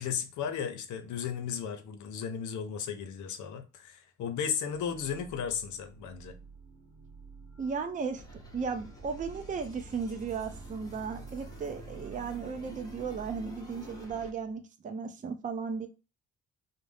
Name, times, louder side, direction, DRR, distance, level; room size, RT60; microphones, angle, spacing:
voice 1, 0.0-6.4, left 7 dB, 75° left, 0.6 m, -35 dB
sound 1, 4.7-14.5, right 5 dB, 85° right, 1.0 m, -50 dB
voice 2, 7.6-8.2 8.5-15.9, right 5 dB, 25° right, 0.5 m, -35 dB
sound 2, 8.2-14.3, left 1 dB, 10° left, 0.9 m, -50 dB
2.6 x 2.0 x 3.2 m
cardioid pair, 90°, 30 cm